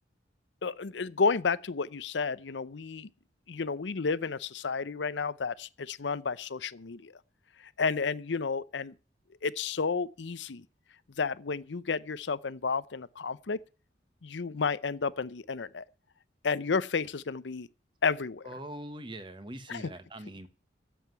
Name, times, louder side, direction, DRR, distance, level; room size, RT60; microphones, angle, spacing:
voice 1, 0.6-3.1 3.5-7.1 7.8-8.9 9.4-10.6 11.2-13.6 14.2-15.8 16.4-17.7 18.0-18.5 19.7-19.8, left 5 dB, 80° left, 0.7 m, -31 dB
voice 2, 18.4-20.5, right 1 dB, 25° right, 1.2 m, -42 dB
10.0 x 8.0 x 9.3 m
head